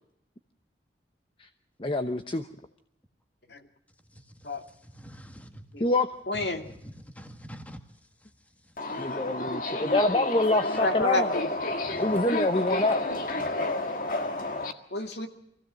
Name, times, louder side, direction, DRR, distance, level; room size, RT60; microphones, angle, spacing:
voice 1, 1.8-2.5 5.8-6.1 9.0-11.3 12.0-13.0, left 2 dB, 30° left, 8 dB, 0.8 m, -26 dB
voice 2, 4.7-5.6 6.6-7.8 11.8-12.2, equal, 10° left, 6 dB, 1.7 m, -45 dB
voice 3, 6.3-6.6 8.8-9.0 9.9-10.0 10.6-11.5 14.9-15.3, left 2 dB, 65° left, 5 dB, 2.4 m, -29 dB
Subway metro underground, 8.8-14.7, left 2 dB, 50° left, 1.7 m, -31 dB
24.5 x 16.0 x 7.4 m, 0.77 s
head